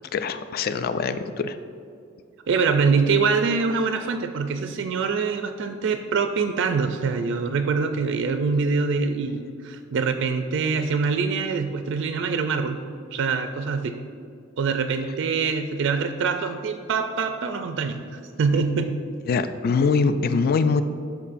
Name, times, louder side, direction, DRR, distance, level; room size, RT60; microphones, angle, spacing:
voice 1, 0.1-1.6 19.3-20.8, left 4 dB, 50° left, 10 dB, 0.3 m, -23 dB
voice 2, 2.5-12.8 13.1-13.9 14.6-19.0, right 5 dB, 60° right, 7 dB, 0.3 m, -24 dB
12.0 x 4.6 x 2.5 m, 2.3 s
head